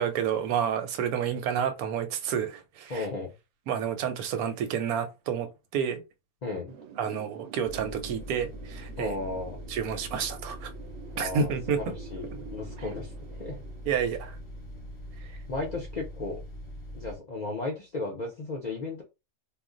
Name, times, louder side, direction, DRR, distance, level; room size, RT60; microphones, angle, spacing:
voice 1, 0.0-3.1 3.7-6.0 7.0-9.2 9.7-10.7 11.2-11.9 13.9-14.4, right 7 dB, 85° right, 1.1 m, -29 dB
voice 2, 2.9-3.3 6.4-6.7 9.0-9.6 11.1-13.6 15.5-16.4 16.9-19.0, left 3 dB, 60° left, 0.4 m, -35 dB
Wind, 6.7-15.4, right 7 dB, 65° right, 0.7 m, -48 dB
sound 1, 7.6-17.2, equal, 25° left, 0.9 m, -42 dB
2.4 x 2.1 x 3.7 m
omnidirectional pair, 1.5 m